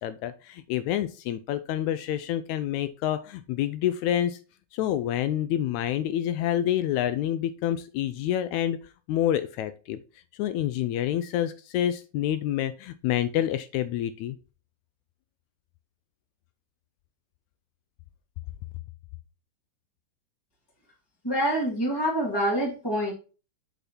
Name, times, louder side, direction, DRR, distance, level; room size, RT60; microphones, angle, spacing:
voice 1, 0.0-4.4 4.7-8.8 9.1-10.0 10.3-14.4, left 11 dB, 80° left, 12 dB, 1.7 m, -28 dB
voice 2, 21.2-23.1, equal, 10° left, -4 dB, 1.4 m, -26 dB
6.4 x 5.4 x 4.2 m, 0.35 s
omnidirectional pair, 3.7 m